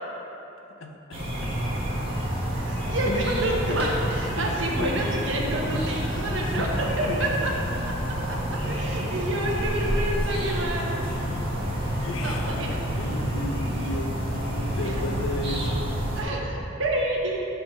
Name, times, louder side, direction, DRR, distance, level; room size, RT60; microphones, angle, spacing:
voice 1, 0.8-1.5 2.2-2.3 2.9-3.9 4.3-4.5 4.8-5.0 5.4-6.7 7.1-7.5 8.5-8.8 11.3-15.9, left 1 dB, 75° left, 4 dB, 0.7 m, -35 dB
sound 1, 1.1-16.2, equal, 30° right, 1.4 m, -28 dB
voice 2, 2.6-7.5 8.0-8.4 8.7-10.9 12.2-12.8 14.8-15.0 16.2-17.4, right 1 dB, 70° right, -1 dB, 1.1 m, -29 dB
5.8 x 5.6 x 5.4 m, 2.9 s
head